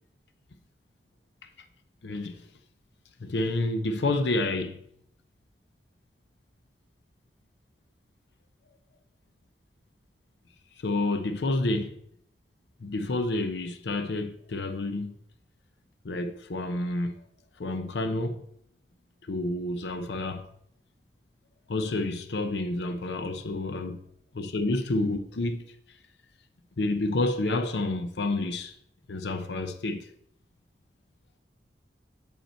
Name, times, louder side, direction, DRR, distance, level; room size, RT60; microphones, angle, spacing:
voice 1, 2.0-2.4 3.2-4.8 10.8-12.0 12.8-15.1 16.0-17.1 17.6-18.4 19.3-20.5 21.7-23.9 24.4-25.6 26.8-28.7 29.1-30.1, left 2 dB, 75° left, 0.6 m, -29 dB
6.6 x 5.3 x 4.3 m
head